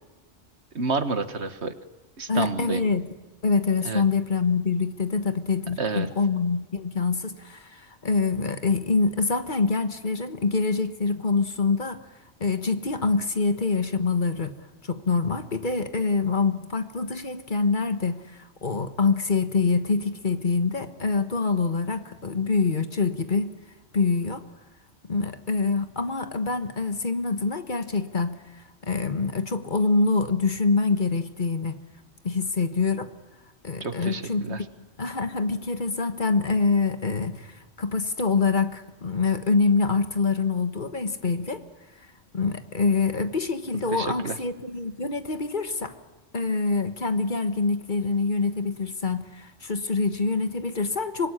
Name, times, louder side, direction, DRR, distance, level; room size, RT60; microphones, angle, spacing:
voice 1, 0.8-1.7 2.2-2.8 3.9-4.0 5.8-6.1 33.8-34.6 43.9-44.4, right 4 dB, 70° right, 10 dB, 1.9 m, -29 dB
voice 2, 2.3-3.1 3.4-12.0 12.4-14.6 14.8-23.5 23.9-24.4 25.0-28.4 28.8-31.8 32.2-33.1 33.6-34.7 35.0-41.6 42.3-45.9 46.3-51.3, left 4 dB, 45° left, 10 dB, 1.5 m, -25 dB
25.0 x 22.5 x 10.0 m, 1.2 s
omnidirectional pair, 1.2 m